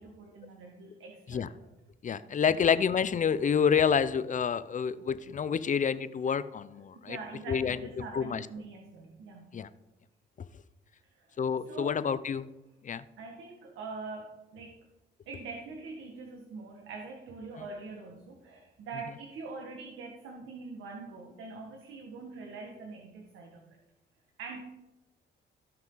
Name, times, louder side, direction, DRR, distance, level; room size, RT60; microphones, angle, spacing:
voice 1, 0.0-1.5 7.0-9.5 11.2-11.4 11.7-12.0 13.2-14.8 15.3-23.6 24.4-24.6, right 4 dB, 80° right, 0 dB, 1.8 m, -44 dB
voice 2, 2.0-7.2 7.5-8.5 9.5-9.7 11.4-12.5 12.8-13.0, left 7 dB, 40° left, 15 dB, 0.6 m, -28 dB
18.0 x 6.0 x 4.0 m, 0.97 s
cardioid pair, 90°, 20 cm